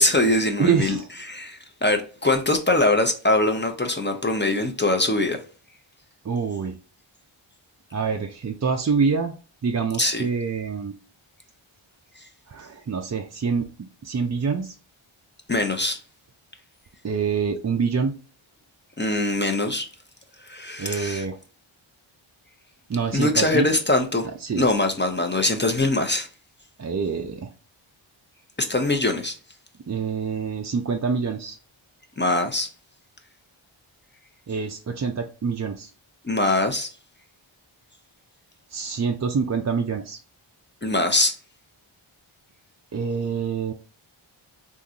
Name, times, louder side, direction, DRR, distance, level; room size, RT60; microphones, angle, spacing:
voice 1, 0.0-1.0 1.2-5.4 10.0-10.3 15.5-16.0 19.0-19.9 20.4-21.3 23.1-24.3 24.6-26.3 28.6-29.3 32.2-32.7 36.2-36.9 40.8-41.3, left 2 dB, 25° left, 0.6 m, -22 dB
voice 2, 0.6-1.1 6.2-6.8 7.9-9.3 9.6-10.9 12.5-14.7 17.0-18.2 20.8-21.4 22.9-23.7 24.4-24.7 26.8-27.5 29.9-31.6 34.5-35.9 38.7-40.2 42.9-43.7, right 5 dB, 35° right, 0.4 m, -26 dB
3.7 x 2.5 x 2.7 m
wide cardioid pair, 55°, 50 cm